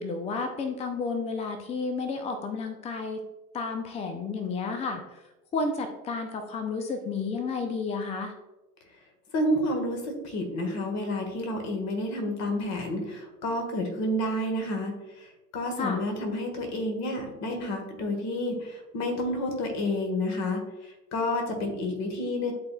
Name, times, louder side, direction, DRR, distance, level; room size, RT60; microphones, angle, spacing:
voice 1, 0.0-3.2 3.5-5.2 5.5-8.3 15.8-16.0, left 4 dB, 15° left, 7 dB, 0.6 m, -31 dB
voice 2, 9.3-22.5, left 1 dB, 35° left, 3 dB, 1.8 m, -30 dB
11.5 x 4.2 x 2.3 m, 1.0 s
hypercardioid pair, 95°, 48 cm